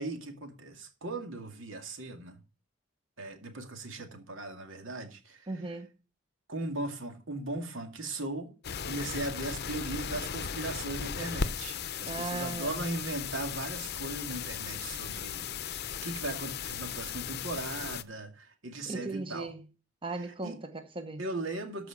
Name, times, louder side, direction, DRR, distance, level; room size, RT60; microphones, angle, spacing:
voice 1, 0.0-2.4 3.2-5.5 6.5-8.5 8.8-19.5 20.4-20.5 21.2-21.9, right 2 dB, 80° right, 2.3 m, -38 dB
voice 2, 5.5-5.9 12.1-12.8 18.9-19.6 20.0-21.2, right 3 dB, 25° right, 0.9 m, -37 dB
sound 1, 8.6-18.0, left 7 dB, 55° left, 0.6 m, -37 dB
13.5 x 5.0 x 6.0 m
head